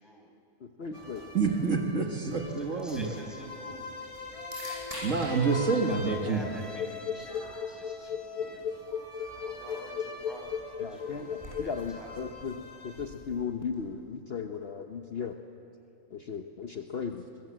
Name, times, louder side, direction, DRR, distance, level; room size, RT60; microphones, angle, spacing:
voice 1, 0.6-1.2 10.8-15.4 16.1-17.3, left 6 dB, 50° left, 5 dB, 1.1 m, -36 dB
sound 1, 0.9-13.1, left 2 dB, 20° left, 2.3 m, -43 dB
voice 2, 1.3-3.2 5.0-6.4, right 4 dB, 60° right, 2 dB, 2.0 m, -27 dB
sound 2, 2.1-14.0, equal, 25° right, 8.0 m, -50 dB
voice 3, 2.7-4.1 5.9-8.8 9.4-12.1, equal, ahead, -1 dB, 5.5 m, -48 dB
sound 3, 6.7-11.9, left 8 dB, 80° left, 1.2 m, -35 dB
22.5 x 22.0 x 7.5 m, 2.7 s
omnidirectional pair, 1.5 m